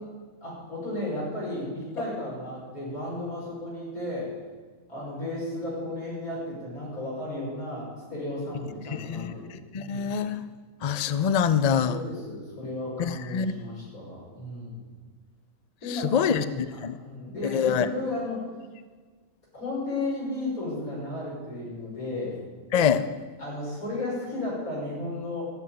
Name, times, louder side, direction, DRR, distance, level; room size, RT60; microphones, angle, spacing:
voice 1, 0.4-4.3 4.9-9.4 9.8-10.0 11.8-14.9 15.8-16.5 17.0-18.4 19.5-22.4 23.4-25.5, left 2 dB, 80° left, -6 dB, 6.5 m, -34 dB
voice 2, 8.9-9.3 9.7-10.4 10.8-12.0 13.0-13.5 15.9-16.9 17.5-17.9 22.7-23.1, left 7 dB, 60° left, 13 dB, 0.4 m, -25 dB
12.5 x 7.6 x 9.5 m, 1.4 s
omnidirectional pair, 1.5 m